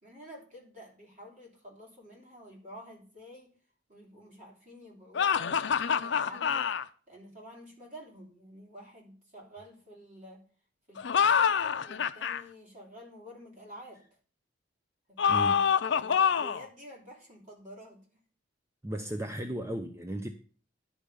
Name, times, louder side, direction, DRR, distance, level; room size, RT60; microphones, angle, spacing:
voice 1, 0.0-3.5 3.9-6.7 7.1-10.4 10.9-14.0 15.1-15.5 15.9-18.2, equal, 45° right, -2 dB, 3.4 m, -49 dB
sound 1, 5.1-6.8 11.0-12.4 15.2-16.7, left 7 dB, 70° left, 0.5 m, -26 dB
voice 2, 15.3-15.7 18.8-20.3, right 1 dB, 15° right, 6 dB, 0.6 m, -35 dB
10.5 x 5.1 x 6.7 m, 0.42 s
head